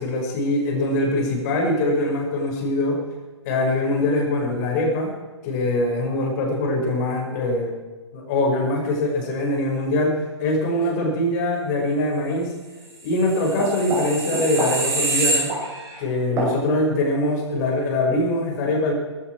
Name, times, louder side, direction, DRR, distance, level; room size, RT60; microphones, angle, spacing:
voice 1, 0.0-3.0 3.4-5.1 5.4-7.7 8.1-12.5 13.0-15.5 16.0-18.9, left 1 dB, 35° left, 1 dB, 5.1 m, -23 dB
sound 1, 13.1-16.0 16.4-16.5, right 2 dB, 20° right, 6.3 m, -25 dB
19.5 x 16.0 x 4.6 m, 1.3 s
figure-of-eight pair, 120°, 15 cm